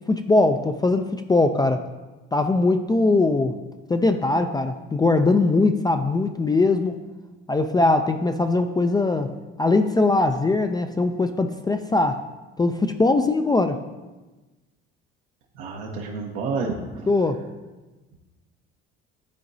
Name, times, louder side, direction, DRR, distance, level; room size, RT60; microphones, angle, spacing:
voice 1, 0.0-1.9 2.3-3.5 3.9-7.0 7.5-12.2 12.6-13.8 17.1-17.4, left 2 dB, 15° left, 6 dB, 0.3 m, -21 dB
voice 2, 15.5-17.1, right 4 dB, 85° right, -1 dB, 0.9 m, -29 dB
11.5 x 3.8 x 2.6 m, 1.2 s
supercardioid pair, 70°, 30 cm